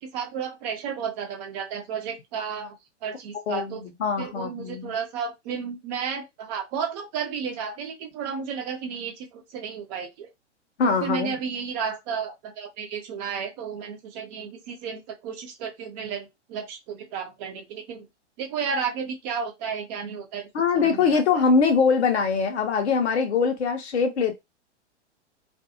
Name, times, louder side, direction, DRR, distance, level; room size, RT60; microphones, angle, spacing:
voice 1, 0.0-2.8 3.0-3.8 4.2-10.3 10.8-18.1 18.4-21.5, right 6 dB, 35° right, 0.7 m, -33 dB
voice 2, 3.5-4.9 10.8-11.4 20.5-24.4, left 5 dB, 65° left, 0.9 m, -23 dB
2.6 x 2.3 x 2.8 m
figure-of-eight pair, 110°, 36 cm